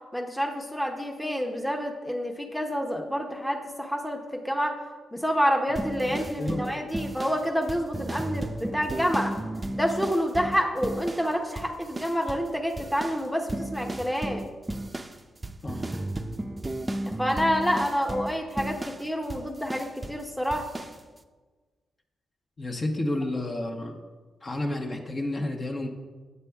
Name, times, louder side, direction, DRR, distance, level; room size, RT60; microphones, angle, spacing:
voice 1, 0.1-4.8 5.1-9.3 9.7-14.4 17.2-20.7, equal, 5° left, 3 dB, 0.8 m, -28 dB
sound 1, 5.8-11.3 11.6-12.5 12.8-20.2 20.5-21.0, right 1 dB, 20° right, 0.5 m, -34 dB
voice 2, 6.0-6.6 7.1-7.2 15.6-15.9 22.6-24.0 24.4-25.9, left 1 dB, 40° left, 3 dB, 1.0 m, -31 dB
8.2 x 6.6 x 3.5 m, 1.4 s
supercardioid pair, 60°, 0 cm